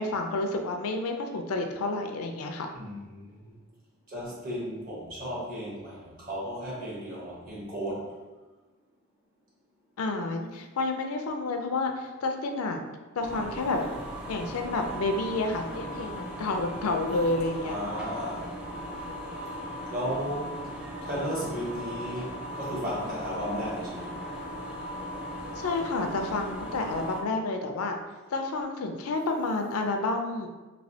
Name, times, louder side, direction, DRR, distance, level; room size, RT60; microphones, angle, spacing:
voice 1, 0.0-2.7 10.0-12.8 13.1-13.9 14.3-17.8 25.6-28.0 28.3-30.5, left 2 dB, 90° left, 5 dB, 0.4 m, -30 dB
voice 2, 2.7-3.5 4.1-8.1 17.6-18.5 19.9-20.6 21.0-24.3, equal, 40° right, -6 dB, 1.1 m, -34 dB
sound 1, 13.2-27.2, equal, 5° right, 0.3 m, -38 dB
3.1 x 2.9 x 2.7 m, 1.2 s
head